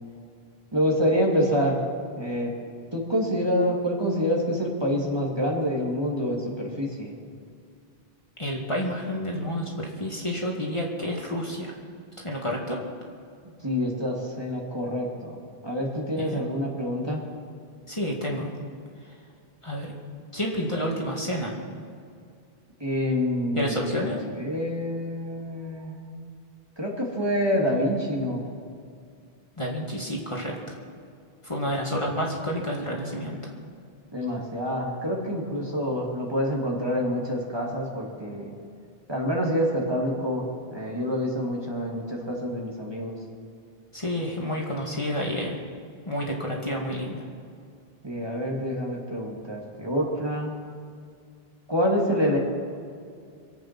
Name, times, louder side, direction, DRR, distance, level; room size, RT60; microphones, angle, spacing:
voice 1, 0.7-1.8 2.2-2.5 2.9-7.2 13.6-17.2 22.8-26.2 26.8-28.4 34.1-38.5 39.1-43.2 48.0-50.6 51.7-52.4, equal, 25° right, -2 dB, 2.4 m, -27 dB
voice 2, 8.4-11.7 12.2-12.8 16.2-16.4 17.9-18.5 19.6-19.9 20.3-21.6 23.6-24.2 29.6-30.8 31.4-33.4 43.9-45.6 46.1-47.2, equal, 30° left, -2 dB, 2.1 m, -29 dB
25.5 x 8.7 x 5.9 m, 2.3 s
omnidirectional pair, 1.0 m